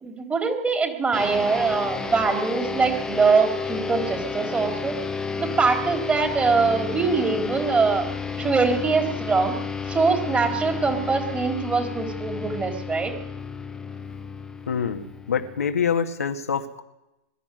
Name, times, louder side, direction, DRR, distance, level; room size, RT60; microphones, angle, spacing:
voice 1, 0.0-5.0 5.4-8.1 8.4-9.5 9.8-13.1, right 4 dB, 15° right, 4 dB, 3.9 m, -23 dB
sound 1, 1.1-15.9, left 5 dB, 10° left, 1.4 m, -31 dB
voice 2, 14.7-16.8, left 7 dB, 85° left, 5 dB, 1.9 m, -26 dB
21.5 x 13.0 x 9.4 m, 0.90 s
hypercardioid pair, 110°, 8 cm